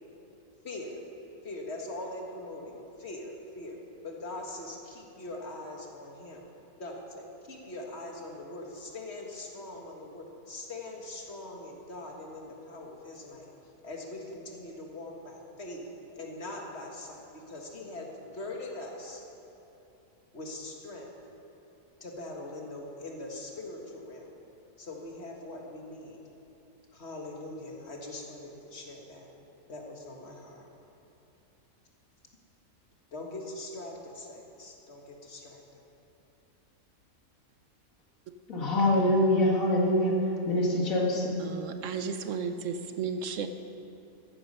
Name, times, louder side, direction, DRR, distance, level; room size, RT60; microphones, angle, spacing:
voice 1, 0.6-1.0 1.4-3.8 4.0-6.5 6.8-13.5 13.8-15.8 16.1-19.2 20.3-21.1 22.0-24.3 24.8-26.2 26.9-29.3 29.7-30.6 33.1-35.8, left 2 dB, 50° left, 0 dB, 1.9 m, -42 dB
voice 2, 38.5-40.2 40.5-41.4, left 1 dB, 75° left, -2 dB, 2.3 m, -24 dB
voice 3, 41.4-43.5, right 6 dB, 70° right, 8 dB, 1.0 m, -34 dB
14.5 x 10.5 x 5.5 m, 2.9 s
omnidirectional pair, 1.4 m